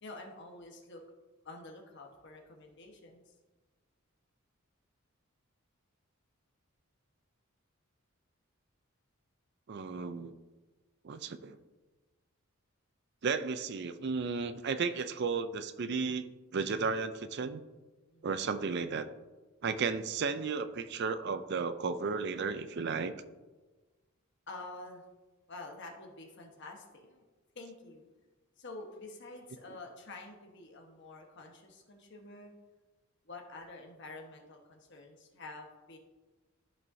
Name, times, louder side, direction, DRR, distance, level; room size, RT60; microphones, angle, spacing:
voice 1, 0.0-1.0 1.4-3.3 18.1-18.3 24.5-25.1 25.5-27.3 27.5-28.2 28.6-32.5 33.2-36.0, left 2 dB, 55° left, 2 dB, 1.2 m, -48 dB
voice 2, 9.7-10.3 11.0-11.6 13.2-17.6 18.2-19.1 19.6-23.1, right 5 dB, 50° right, 12 dB, 0.4 m, -34 dB
13.5 x 5.5 x 2.7 m, 1.2 s
head